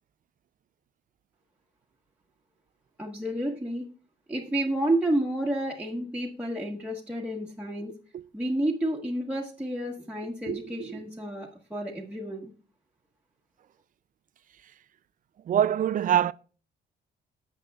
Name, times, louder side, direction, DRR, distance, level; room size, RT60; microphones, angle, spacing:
voice 1, 3.0-3.9 4.3-7.9 8.3-12.5, right 1 dB, 5° right, 1.3 m, -30 dB
voice 2, 10.5-11.0 14.6-14.7 15.4-16.3, right 10 dB, 45° right, 0.4 m, -25 dB
13.0 x 7.8 x 2.4 m
cardioid pair, 90°, 20 cm